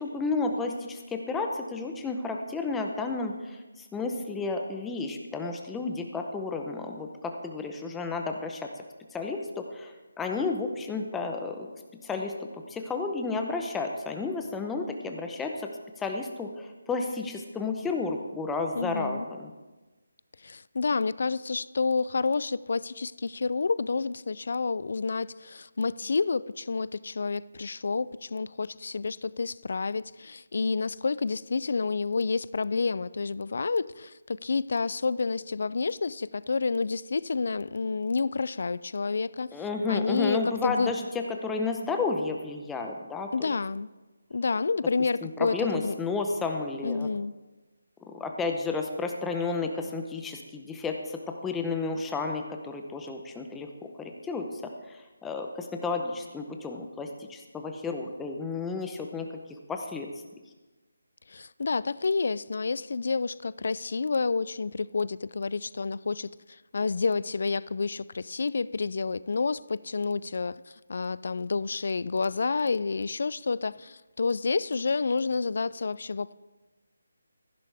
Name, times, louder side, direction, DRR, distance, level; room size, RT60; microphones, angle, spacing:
voice 1, 0.0-8.7 9.1-11.7 12.0-12.3 12.7-15.7 16.0-19.5 39.5-41.0 41.4-43.5 45.2-47.1 48.1-53.7 54.0-59.3 59.7-60.1, left 4 dB, 5° left, 3 dB, 0.7 m, -32 dB
voice 2, 18.7-19.3 20.4-39.6 39.9-40.9 43.3-43.9 44.3-45.9 46.8-47.3 61.3-76.3, left 4 dB, 60° left, 19 dB, 0.3 m, -29 dB
15.0 x 10.5 x 3.4 m, 1.2 s
figure-of-eight pair, 165°, 0 cm